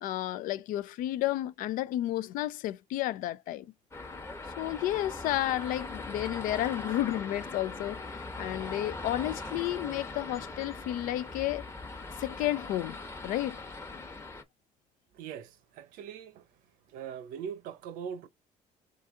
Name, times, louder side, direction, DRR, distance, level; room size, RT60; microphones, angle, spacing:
voice 1, 0.0-3.7 4.6-11.6 12.2-13.0 13.2-13.6, left 14 dB, 75° left, 0.5 m, -32 dB
sound 1, 3.9-14.4, left 3 dB, 20° left, 0.9 m, -41 dB
voice 2, 15.1-16.4 16.9-18.3, right 8 dB, 85° right, 0.8 m, -41 dB
3.8 x 3.8 x 3.6 m
cardioid pair, 120°, 14 cm